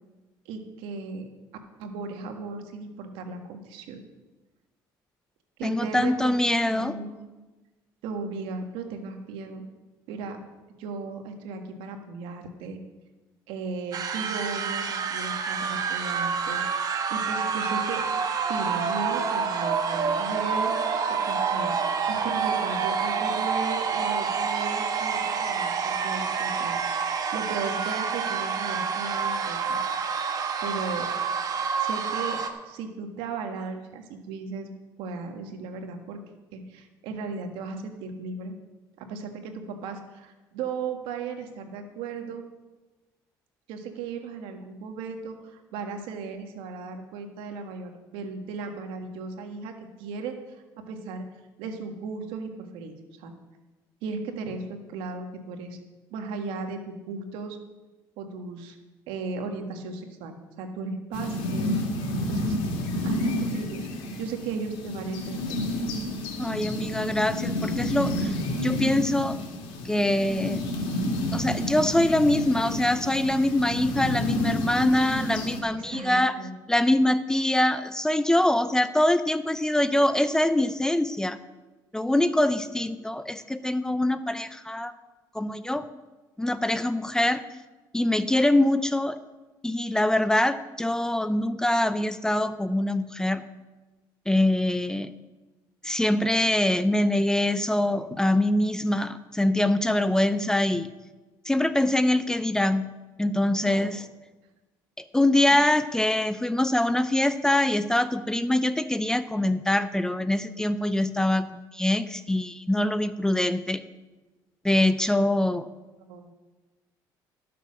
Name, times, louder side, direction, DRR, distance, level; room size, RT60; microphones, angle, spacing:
voice 1, 0.4-1.3 1.8-4.0 5.6-6.4 6.6-7.2 8.0-9.6 10.1-10.4 10.8-12.8 13.5-18.1 18.4-21.8 22.1-26.8 27.3-29.8 30.6-31.1 31.8-34.7 35.0-36.2 36.5-38.5 39.0-42.4 43.7-49.7 50.0-51.3 51.6-53.3 54.0-55.8 56.1-57.6 58.2-58.8 59.1-61.8 62.3-62.6 63.0-63.9 64.2-65.6 75.7-76.5 103.6-103.9 116.1-116.3, right 4 dB, 85° right, 5 dB, 1.6 m, -36 dB
voice 2, 5.6-7.0 66.4-68.4 68.6-69.4 69.8-70.6 71.3-76.4 76.7-81.4 81.9-84.9 85.3-85.8 86.4-87.4 87.9-89.2 89.6-93.4 94.3-95.1 95.8-100.9 101.4-102.9 103.2-104.0 105.1-113.8 114.6-115.7, left 1 dB, 5° left, 12 dB, 0.6 m, -24 dB
sound 1, 13.9-32.5, right 6 dB, 45° right, 1.2 m, -28 dB
sound 2, 61.1-75.6, left 1 dB, 80° left, 2.3 m, -30 dB
13.0 x 6.8 x 6.3 m, 1.2 s
cardioid pair, 95°, 9 cm